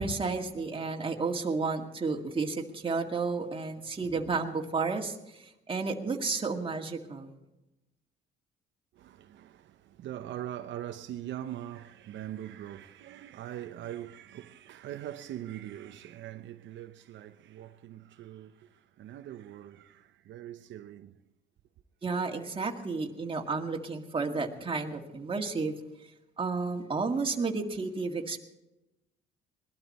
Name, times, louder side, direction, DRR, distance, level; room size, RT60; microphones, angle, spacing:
voice 1, 0.0-7.3 22.0-25.7 26.4-28.4, right 4 dB, 25° right, 2.0 m, -32 dB
voice 2, 8.9-21.2, right 12 dB, 75° right, 0.8 m, -42 dB
21.0 x 12.5 x 4.2 m
cardioid pair, 105°, 20 cm